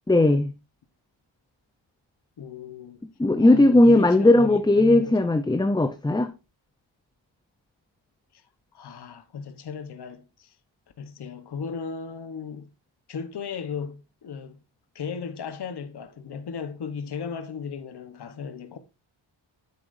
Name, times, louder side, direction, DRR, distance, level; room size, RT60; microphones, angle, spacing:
voice 1, 0.1-0.5 3.2-6.3, left 2 dB, 10° left, 0.6 m, -18 dB
voice 2, 2.4-3.0 3.4-5.1 8.7-10.5 11.0-12.7 13.1-14.6 14.9-18.8, left 6 dB, 55° left, 1.1 m, -36 dB
9.8 x 7.6 x 2.6 m
wide cardioid pair, 130°, 47 cm